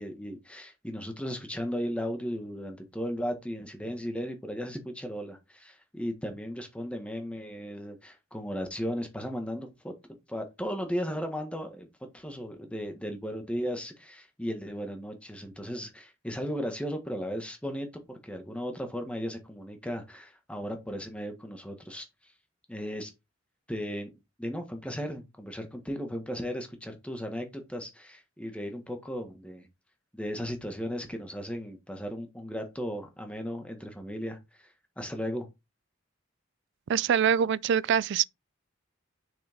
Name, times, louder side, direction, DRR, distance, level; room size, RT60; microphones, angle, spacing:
voice 1, 0.0-9.9 10.3-22.0 22.7-23.1 23.7-24.1 24.4-29.7 30.1-35.5, equal, 5° left, 1.6 m, -36 dB
voice 2, 36.9-38.2, right 8 dB, 60° right, 0.4 m, -24 dB
6.6 x 6.4 x 3.6 m
head